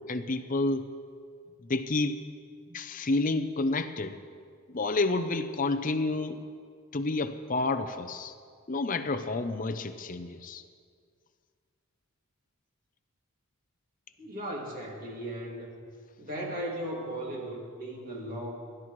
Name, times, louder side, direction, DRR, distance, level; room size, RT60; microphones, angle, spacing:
voice 1, 0.1-0.9 1.6-2.2 2.7-4.2 4.7-6.4 6.9-8.3 8.7-10.6, left 3 dB, 35° left, 9 dB, 0.6 m, -29 dB
voice 2, 14.2-15.8 16.2-18.5, right 1 dB, 40° right, -3 dB, 2.4 m, -37 dB
22.5 x 12.0 x 3.2 m, 2.1 s
head